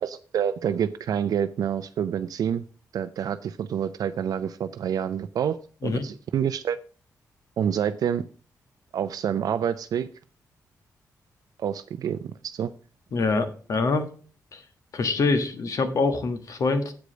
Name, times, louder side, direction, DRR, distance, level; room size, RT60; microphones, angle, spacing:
voice 1, 0.0-2.6 2.9-5.6 5.8-6.8 7.6-8.2 8.9-10.1 11.6-12.7, right 8 dB, 70° right, 10 dB, 0.4 m, -27 dB
voice 2, 13.1-14.1 14.5-14.6 14.9-16.9, left 3 dB, 55° left, 8 dB, 1.4 m, -25 dB
8.1 x 4.9 x 6.3 m, 0.40 s
cardioid pair, 115°, 7 cm